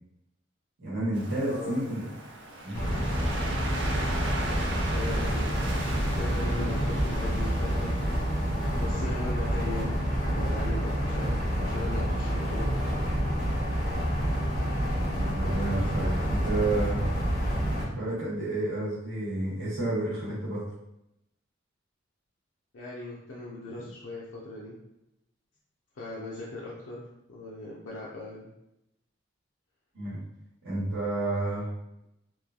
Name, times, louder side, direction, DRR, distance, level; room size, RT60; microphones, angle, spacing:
voice 1, 0.8-2.1 2.6-2.8 15.1-17.0 17.9-20.6 29.9-30.2 30.6-31.7, right 2 dB, 85° right, -8 dB, 1.0 m, -30 dB
Waves surf, 1.1-8.9, right 2 dB, 65° right, 0.4 m, -39 dB
voice 2, 1.5-1.8 4.9-5.5 6.1-7.9 8.8-10.0 10.3-12.7 22.7-24.8 26.0-28.5, left 2 dB, 80° left, -6 dB, 0.5 m, -38 dB
sound 1, 2.7-17.8, equal, 45° left, 1.1 m, -28 dB
3.0 x 2.2 x 2.3 m, 0.85 s
head